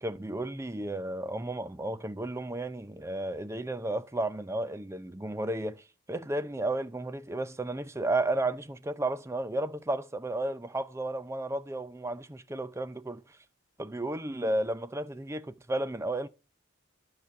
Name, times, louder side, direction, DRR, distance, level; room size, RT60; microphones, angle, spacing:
voice 1, 0.0-13.2 13.8-16.3, right 2 dB, 15° right, 0.5 m, -33 dB
12.0 x 5.0 x 6.8 m
head